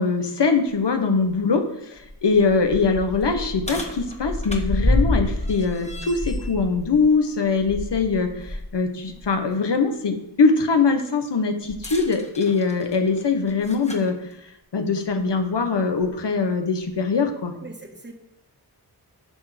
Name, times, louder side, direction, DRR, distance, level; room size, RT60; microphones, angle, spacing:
voice 1, 0.0-14.2 14.7-17.5, left 4 dB, 90° left, 6 dB, 1.4 m, -22 dB
sound 1, 0.7-0.8 1.3-1.4 2.0-8.7 9.1-9.3 11.7-14.1 15.1-15.2 16.0-16.1, left 1 dB, 15° left, 1.6 m, -28 dB
voice 2, 17.2-18.1, right 2 dB, 25° right, 2 dB, 1.6 m, -42 dB
10.5 x 6.2 x 5.1 m, 0.76 s
wide cardioid pair, 90°, 41 cm